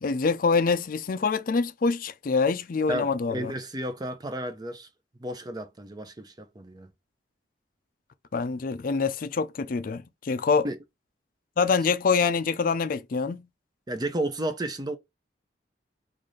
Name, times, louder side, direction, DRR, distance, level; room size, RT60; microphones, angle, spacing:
voice 1, 0.0-3.5 8.3-10.7 11.6-13.5, left 4 dB, 50° left, 0.4 m, -25 dB
voice 2, 2.9-4.9 5.2-6.9 10.6-10.8 13.9-15.0, right 1 dB, 20° right, 0.6 m, -32 dB
3.9 x 2.5 x 3.1 m
head